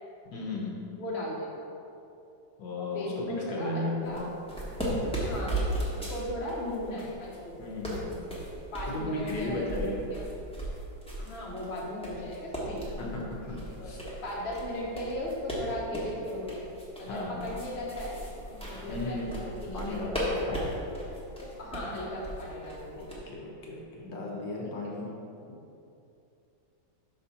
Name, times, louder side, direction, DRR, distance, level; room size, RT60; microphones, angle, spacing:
voice 1, 0.2-0.8 2.6-4.3 7.6-8.2 8.9-10.1 13.0-14.0 17.1-17.4 18.9-19.4 19.7-20.6 22.9-25.1, left 2 dB, 70° left, -2 dB, 1.6 m, -35 dB
voice 2, 1.0-1.5 2.8-4.3 5.0-7.7 8.7-10.3 11.2-13.1 13.8-16.7 17.0-18.1 18.5-20.0 20.3-20.6 21.0-23.0 24.6-24.9, left 1 dB, 35° left, -4 dB, 1.3 m, -37 dB
sound 1, 4.0-23.1, right 1 dB, 5° left, 1.0 m, -37 dB
5.8 x 4.6 x 5.6 m, 2.7 s
omnidirectional pair, 2.1 m